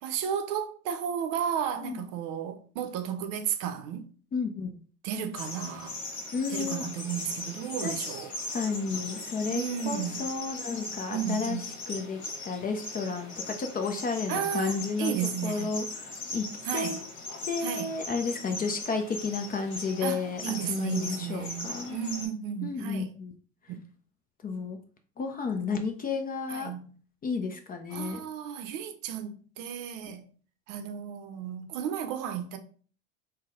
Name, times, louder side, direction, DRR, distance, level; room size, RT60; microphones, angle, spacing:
voice 1, 0.0-4.0 5.0-6.0 6.5-8.3 9.5-10.2 11.1-11.6 14.3-15.8 16.6-17.0 17.6-17.9 20.0-23.1 23.7-23.8 26.5-26.9 27.9-30.2 30.7-32.6, right 8 dB, 55° right, 0.6 m, -33 dB
voice 2, 4.3-4.8 6.3-6.8 7.8-8.3 8.5-15.1 15.4-16.5 16.7-17.0 17.5-22.0 22.6-23.3 24.4-24.8 25.2-26.7 27.2-28.2, left 4 dB, 25° left, 0.5 m, -32 dB
sound 1, 5.3-22.3, left 2 dB, 45° left, 1.4 m, -39 dB
3.9 x 2.2 x 3.6 m
hypercardioid pair, 90°, 38 cm